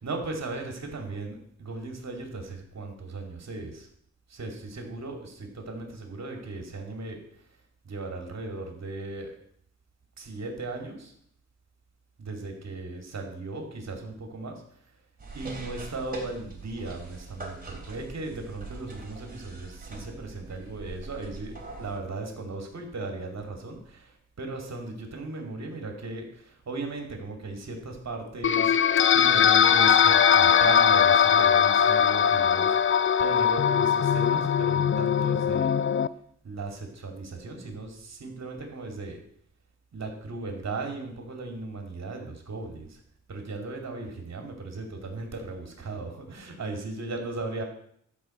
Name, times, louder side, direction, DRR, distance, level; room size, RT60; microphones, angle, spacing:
voice 1, 0.0-3.9 4.3-7.2 7.8-9.3 10.2-11.1 12.2-14.6 15.3-28.7 29.1-35.7 36.4-39.2 39.9-43.0 43.3-47.6, right 3 dB, 60° right, 3 dB, 2.6 m, -37 dB
sound 1, 15.2-22.0, right 3 dB, 30° right, 3.4 m, -42 dB
sound 2, 28.4-36.1, left 8 dB, 45° left, 0.5 m, -21 dB
12.5 x 5.4 x 7.7 m, 0.67 s
wide cardioid pair, 110°, 29 cm